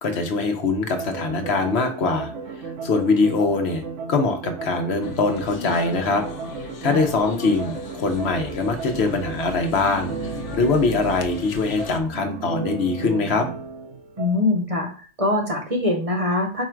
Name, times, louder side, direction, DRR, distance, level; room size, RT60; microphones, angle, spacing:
voice 1, 0.0-2.3 2.6-3.8 4.1-6.2 6.8-13.5, left 3 dB, 65° left, 5 dB, 1.1 m, -23 dB
sound 1, 0.9-14.4, right 5 dB, 85° right, 1.0 m, -34 dB
sound 2, 5.0-12.0, left 5 dB, 85° left, 1.0 m, -37 dB
voice 2, 14.2-14.9 15.2-16.7, left 2 dB, 35° right, 1 dB, 0.8 m, -23 dB
4.6 x 2.4 x 4.4 m, 0.40 s
omnidirectional pair, 1.2 m